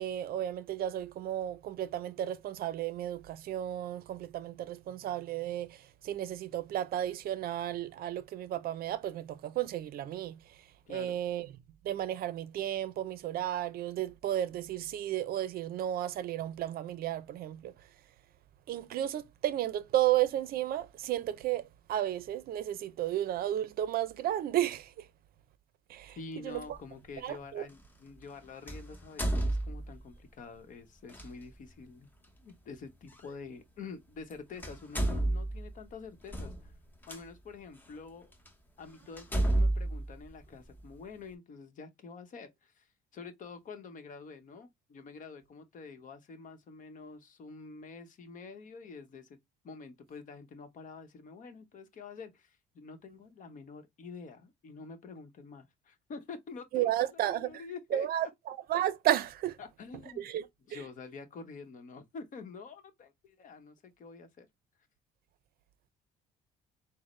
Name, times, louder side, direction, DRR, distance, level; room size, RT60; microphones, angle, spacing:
voice 1, 0.0-5.8 6.0-10.4 10.9-11.5 11.8-17.7 18.7-21.6 21.9-24.9 25.9-26.2 26.4-26.6 27.2-27.7 56.7-57.5 57.9-59.6 60.2-60.4 60.7-60.8, right 12 dB, 60° right, 0.5 m, -33 dB
voice 2, 10.9-11.2 26.2-32.1 32.4-36.7 37.1-38.3 38.8-42.9 43.1-49.4 49.6-58.3 59.6-60.3 60.7-64.5, left 4 dB, 50° left, 0.9 m, -47 dB
sound 1, 26.6-26.8 28.7-30.2 31.1-31.3 33.1-33.2 34.2-34.3 34.6-37.2 37.9-38.0 38.5-38.6 39.2-41.0, right 1 dB, 10° left, 0.8 m, -31 dB
6.2 x 2.1 x 3.1 m
cardioid pair, 110°, 17 cm